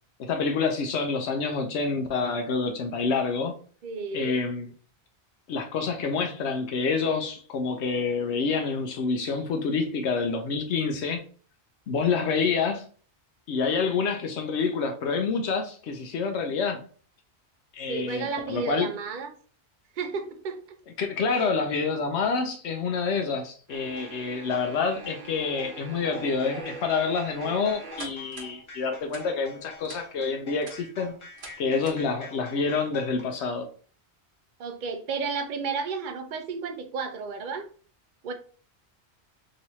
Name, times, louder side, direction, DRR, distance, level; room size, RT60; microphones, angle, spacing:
voice 1, 0.2-3.6 4.1-4.7 5.5-11.2 11.9-12.8 13.5-16.8 17.7-18.9 21.0-31.1 31.6-33.7, left 4 dB, 80° left, 0.9 m, -27 dB
voice 2, 3.8-4.4 17.9-19.3 20.0-20.6 21.3-21.5 34.6-37.7 38.2-38.3, right 4 dB, 55° right, 0.7 m, -32 dB
sound 1, 23.7-28.5 29.1-29.2 29.8-30.0 30.5-30.8 31.4-31.5 31.8-32.0, right 3 dB, 70° right, 1.2 m, -42 dB
sound 2, 24.0-33.2, left 3 dB, 30° left, 0.7 m, -47 dB
3.1 x 2.8 x 2.9 m
omnidirectional pair, 1.1 m